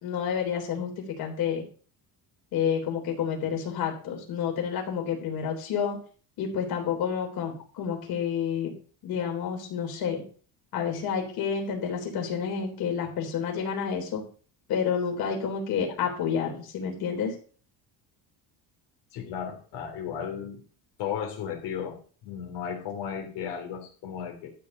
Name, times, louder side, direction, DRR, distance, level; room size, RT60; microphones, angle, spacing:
voice 1, 0.0-1.7 2.5-6.0 6.4-8.7 9.0-10.2 10.7-14.2 14.7-17.3, left 7 dB, 60° left, 2 dB, 3.7 m, -29 dB
voice 2, 19.1-20.6 21.0-24.5, left 8 dB, 85° left, 0 dB, 3.5 m, -35 dB
13.0 x 5.3 x 8.2 m, 0.41 s
cardioid pair, 175°, 41 cm